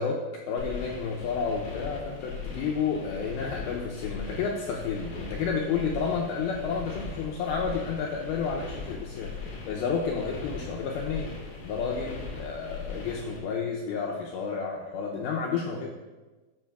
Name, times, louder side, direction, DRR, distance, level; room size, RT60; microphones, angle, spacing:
voice 1, 0.0-11.4 11.6-15.9, left 5 dB, 85° left, 0 dB, 2.1 m, -31 dB
sound 1, 0.6-13.4, left 4 dB, 55° left, 2.3 m, -39 dB
13.5 x 5.9 x 2.3 m, 1.2 s
omnidirectional pair, 4.9 m